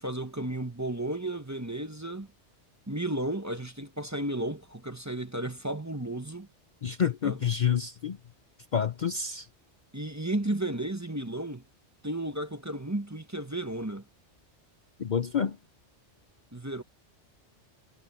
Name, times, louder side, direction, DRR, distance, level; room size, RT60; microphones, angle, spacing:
voice 1, 0.0-2.3 2.9-6.5 7.2-7.4 9.9-11.6 12.0-14.0 16.5-16.8, right 1 dB, 15° right, 1.1 m, -33 dB
voice 2, 6.8-8.2 8.7-9.5 15.0-15.6, left 7 dB, 50° left, 0.7 m, -28 dB
omnidirectional pair, 1.2 m